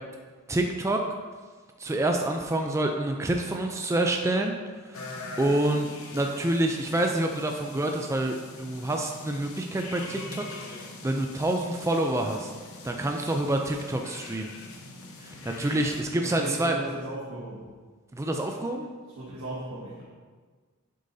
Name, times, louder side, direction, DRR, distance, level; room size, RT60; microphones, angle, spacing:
voice 1, 0.5-1.0 1.8-4.6 4.8-5.1 5.4-12.5 12.8-14.5 15.2-16.8 18.1-18.9, right 1 dB, 15° right, 2 dB, 0.4 m, -27 dB
sound 1, 4.9-16.0, left 2 dB, 70° left, 1.0 m, -43 dB
voice 2, 16.2-17.7 19.2-20.0, right 1 dB, 90° right, -7 dB, 1.6 m, -36 dB
8.4 x 7.5 x 2.7 m, 1.5 s
head